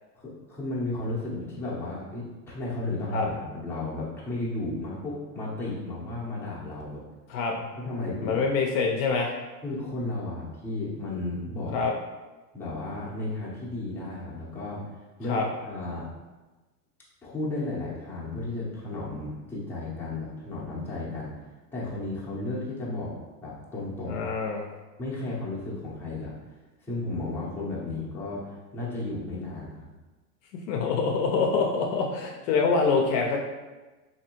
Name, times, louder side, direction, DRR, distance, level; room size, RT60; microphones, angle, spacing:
voice 1, 0.2-7.0 7.8-8.3 9.6-11.8 12.5-14.8 15.2-15.4 15.6-16.1 17.2-21.4 21.7-23.2 23.4-24.2 25.0-26.3 26.8-29.9, left 2 dB, 5° left, -8 dB, 0.7 m, -33 dB
voice 2, 8.2-9.3 11.7-11.9 15.3-15.4 24.1-24.7 30.7-33.4, left 4 dB, 55° left, 1 dB, 0.5 m, -25 dB
3.2 x 2.8 x 2.9 m, 1.2 s
hypercardioid pair, 120°, 49 cm